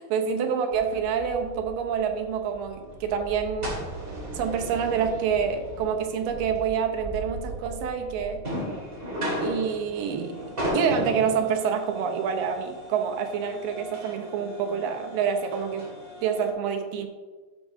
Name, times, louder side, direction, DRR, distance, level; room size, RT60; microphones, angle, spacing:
voice 1, 0.0-3.7 4.3-8.4 9.4-10.4 10.7-15.9 16.2-17.1, right 7 dB, 80° right, 5 dB, 2.5 m, -27 dB
sound 1, 0.7-16.5, right 1 dB, 20° right, 1.6 m, -36 dB
12.0 x 6.1 x 2.7 m, 1.4 s
omnidirectional pair, 4.0 m